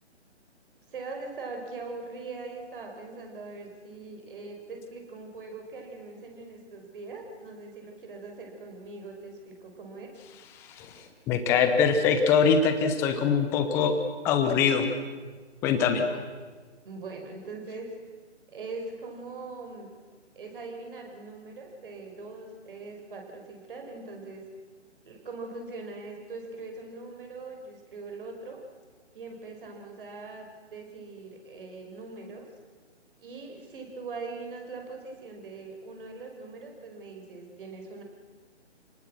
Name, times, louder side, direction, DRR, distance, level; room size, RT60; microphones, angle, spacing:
voice 1, 0.9-10.1 15.9-16.2 16.8-17.9 18.5-19.9 20.4-24.4 25.0-28.6 29.1-32.5 33.2-38.0, right 3 dB, 50° right, 3 dB, 5.6 m, -41 dB
voice 2, 10.8-13.9 14.2-14.9 15.6-16.0, left 6 dB, 5° left, 7 dB, 0.7 m, -23 dB
28.0 x 19.0 x 6.3 m, 1.4 s
figure-of-eight pair, 150°, 35 cm